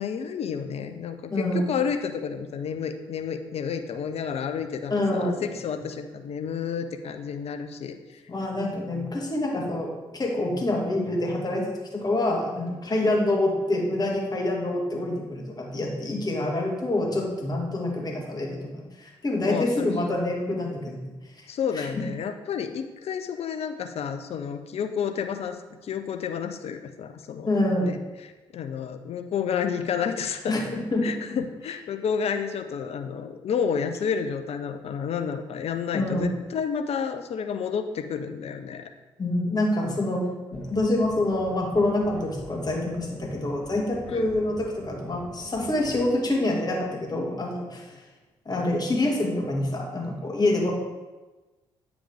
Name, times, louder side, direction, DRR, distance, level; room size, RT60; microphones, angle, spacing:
voice 1, 0.0-8.2 13.0-13.1 19.5-19.9 21.5-27.5 27.8-28.0 28.5-30.5 31.0-38.9 44.1-44.2, left 7 dB, 50° left, 8 dB, 0.7 m, -30 dB
voice 2, 1.3-1.7 4.9-5.4 8.3-21.1 21.4-21.5 21.7-22.0 27.5-28.0 30.5-31.4 35.9-36.3 39.2-40.2 40.5-47.9 48.5-50.7, left 1 dB, 30° left, -1 dB, 2.1 m, -26 dB
sound 1, 40.5-46.1, right 1 dB, 85° right, 2.2 m, -45 dB
8.9 x 5.0 x 3.5 m, 1.2 s
figure-of-eight pair, 40°, 14 cm